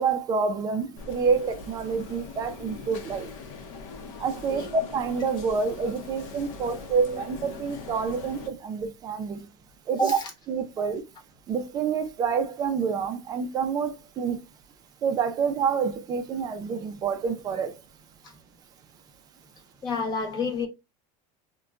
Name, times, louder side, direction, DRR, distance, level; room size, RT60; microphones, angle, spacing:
voice 1, 0.0-3.3 4.2-9.5 9.9-10.2 10.5-11.0 11.5-14.4 15.0-17.7, right 5 dB, 20° right, 0.4 m, -27 dB
sound 1, 1.0-8.5, left 4 dB, 65° left, 0.7 m, -41 dB
voice 2, 9.9-10.3 18.2-18.3 19.8-20.7, left 2 dB, 25° left, 0.8 m, -29 dB
3.9 x 2.2 x 2.2 m
supercardioid pair, 160°, 18 cm